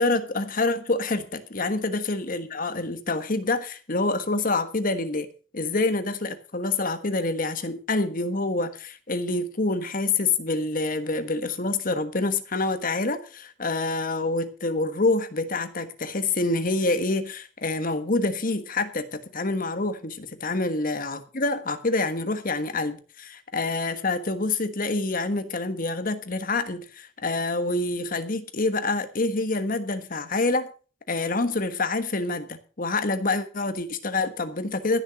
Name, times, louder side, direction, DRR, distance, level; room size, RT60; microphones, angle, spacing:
voice 1, 0.0-5.3 5.5-30.7 31.1-35.0, left 3 dB, 45° left, 1.4 m, -27 dB
15.0 x 7.0 x 6.4 m
head